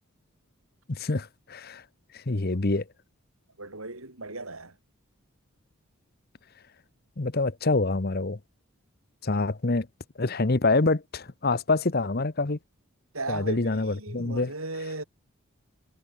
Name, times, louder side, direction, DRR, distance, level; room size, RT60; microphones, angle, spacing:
voice 1, 0.9-1.8 2.1-2.9 7.2-8.4 9.2-9.9 10.2-12.6 13.3-14.5, left 3 dB, 45° left, 1.0 m, -26 dB
voice 2, 3.6-4.7 13.1-15.0, right 2 dB, 80° right, 6.9 m, -36 dB
head